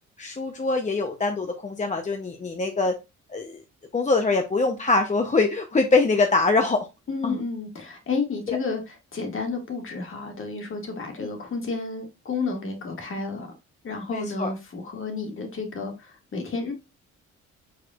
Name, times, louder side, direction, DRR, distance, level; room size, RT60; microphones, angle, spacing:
voice 1, 0.2-2.9 3.3-3.6 3.9-6.9 7.2-7.4 8.5-8.6 11.2-11.3 14.1-14.5, left 3 dB, 25° left, 0.7 m, -23 dB
voice 2, 7.1-13.5 13.8-16.7, left 4 dB, 45° left, 1.6 m, -31 dB
5.0 x 4.3 x 2.3 m
cardioid pair, 90°, 30 cm